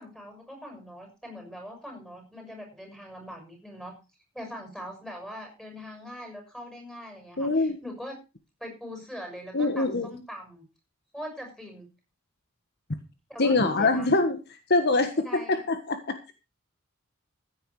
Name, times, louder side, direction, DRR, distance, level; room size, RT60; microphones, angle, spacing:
voice 1, 0.0-3.9 4.3-8.2 8.6-10.6 11.1-11.9 13.3-14.1 15.2-15.6, equal, ahead, 2 dB, 6.5 m, -42 dB
voice 2, 7.4-7.8 9.5-10.1 13.4-14.4 14.7-16.3, left 3 dB, 50° left, 8 dB, 1.5 m, -24 dB
15.5 x 9.1 x 4.8 m, 0.30 s
head